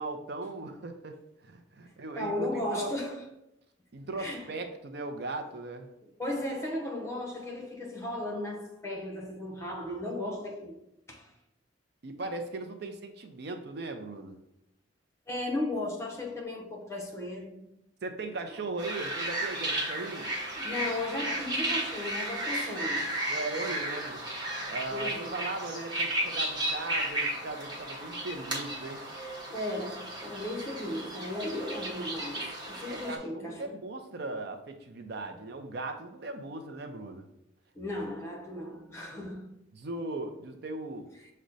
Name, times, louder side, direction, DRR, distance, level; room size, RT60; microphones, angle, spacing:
voice 1, 0.0-2.9 3.9-5.9 12.0-14.4 18.0-20.3 23.3-24.2 24.7-29.0 32.8-37.3 39.7-41.1, right 2 dB, 55° right, 0.5 m, -38 dB
voice 2, 2.1-3.3 4.2-4.5 6.2-10.8 11.1-11.3 15.3-17.6 20.6-23.1 24.9-25.4 29.5-33.7 37.7-39.5, left 1 dB, 15° left, 0.8 m, -35 dB
sound 1, 18.8-33.2, right 1 dB, 25° right, 0.9 m, -34 dB
6.1 x 2.1 x 3.9 m
head